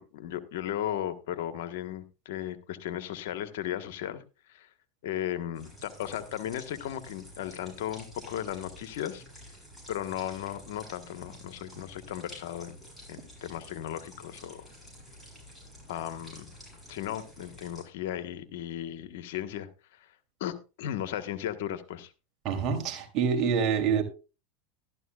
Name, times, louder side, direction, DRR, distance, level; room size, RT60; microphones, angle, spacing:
voice 1, 0.0-4.2 4.5-4.7 5.0-9.2 9.9-12.8 13.1-14.7 15.9-16.5 16.9-20.1 20.4-22.1, left 11 dB, 70° left, 1.4 m, -36 dB
sound 1, 5.5-17.8, equal, 5° left, 7.6 m, -50 dB
voice 2, 22.4-24.0, right 6 dB, 45° right, 3.2 m, -26 dB
14.0 x 12.5 x 2.4 m
hypercardioid pair, 115°, 0 cm